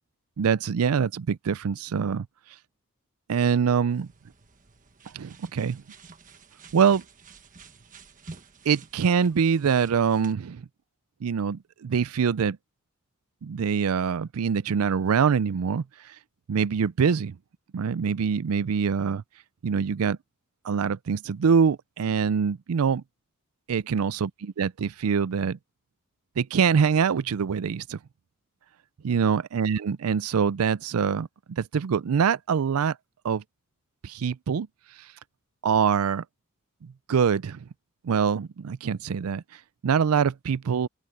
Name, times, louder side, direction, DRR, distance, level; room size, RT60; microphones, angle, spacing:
voice 1, 0.4-2.3 3.3-4.1 5.1-5.8 6.7-7.0 8.7-10.6 11.2-12.6 13.4-15.8 16.5-17.4 17.7-19.2 19.6-20.2 20.6-23.0 23.7-25.6 26.4-28.0 29.0-33.0 33.2-33.4 34.0-34.7 35.6-36.2 36.8-37.6 38.0-39.4 39.8-40.9, right 6 dB, 80° right, 0.4 m, -24 dB
sound 1, 3.9-10.3, right 4 dB, 35° right, 1.3 m, -50 dB
open air
head